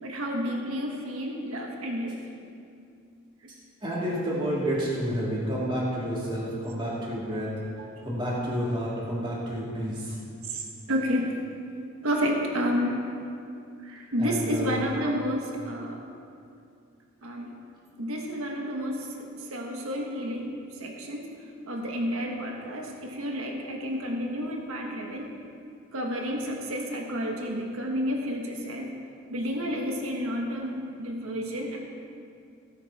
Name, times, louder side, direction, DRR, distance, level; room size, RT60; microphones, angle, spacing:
voice 1, 0.0-2.2 7.8-7.9 10.5-11.4 12.0-13.0 13.8-16.0 17.2-17.5 18.0-21.3 21.7-25.3 25.9-28.9 29.3-31.8, equal, 70° right, 1 dB, 1.5 m, -30 dB
voice 2, 3.5-7.5 8.0-10.2 14.2-14.8, equal, 25° right, -7 dB, 3.1 m, -30 dB
17.0 x 9.7 x 4.3 m, 2.5 s
head